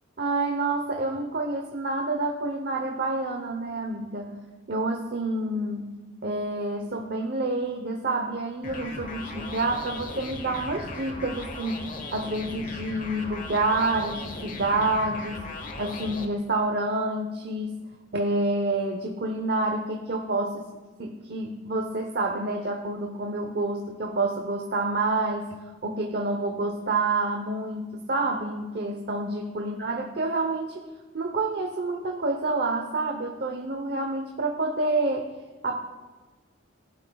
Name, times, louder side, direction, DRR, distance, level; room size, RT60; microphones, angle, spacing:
voice 1, 0.2-20.7 21.0-30.9 31.1-35.3 35.6-35.8, right 2 dB, 55° right, 2 dB, 0.9 m, -28 dB
sound 1, 8.6-16.3, left 2 dB, 45° left, 1.0 m, -38 dB
19.0 x 11.5 x 2.3 m, 1.3 s
head